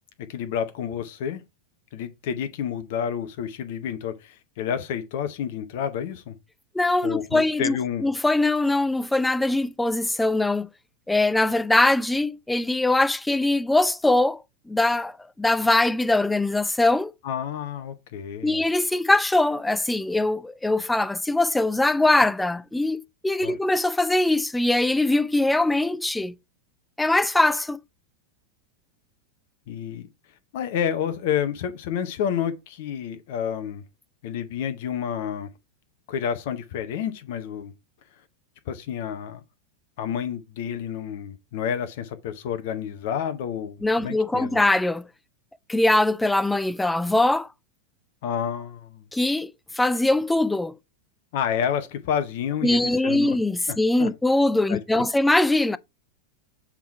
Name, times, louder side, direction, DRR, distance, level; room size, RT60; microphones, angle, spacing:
voice 1, 0.3-1.4 1.9-6.3 7.0-8.1 17.2-18.6 23.4-23.6 29.7-30.1 30.5-33.8 34.2-35.5 36.1-37.7 38.7-39.4 40.0-44.6 48.2-49.0 51.3-53.4 53.7-54.1 54.7-54.8, left 8 dB, 50° left, 0.9 m, -29 dB
voice 2, 6.7-7.7 8.0-10.7 11.1-14.4 14.7-17.1 18.4-26.4 27.0-27.8 43.8-45.1 45.7-47.5 49.1-50.7 52.6-55.8, left 2 dB, 5° left, 0.4 m, -22 dB
7.3 x 3.7 x 4.6 m
figure-of-eight pair, 90°, 0 cm